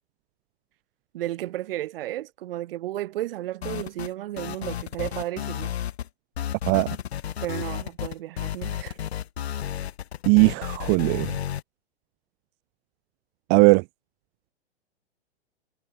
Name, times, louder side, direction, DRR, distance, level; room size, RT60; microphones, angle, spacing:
voice 1, 1.1-5.7 7.4-9.0, right 14 dB, 55° right, 4.4 m, -33 dB
sound 1, 3.6-4.1 4.4-6.1 6.4-11.6, left 10 dB, 70° left, 2.4 m, -32 dB
voice 2, 10.3-11.4 13.5-13.8, right 40 dB or more, 35° right, 0.7 m, -18 dB
hypercardioid pair, 120°, 33 cm